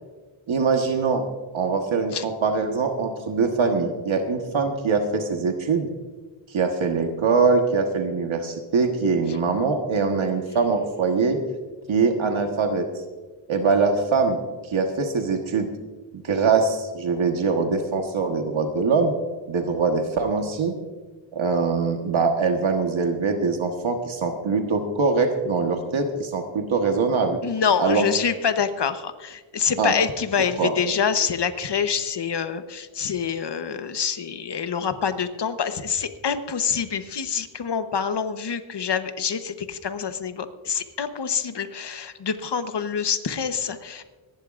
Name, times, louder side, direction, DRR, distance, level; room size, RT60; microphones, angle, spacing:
voice 1, 0.5-1.2 1.5-5.9 6.5-11.4 11.9-12.9 13.5-15.7 16.1-19.1 19.5-20.7 21.3-27.4 27.8-28.0 29.8-29.9 30.6-30.7, right 4 dB, 70° right, 4 dB, 1.4 m, -23 dB
voice 2, 27.4-44.0, left 7 dB, 55° left, 10 dB, 1.1 m, -26 dB
25.0 x 11.0 x 2.5 m, 1.3 s
wide cardioid pair, 85°, 50 cm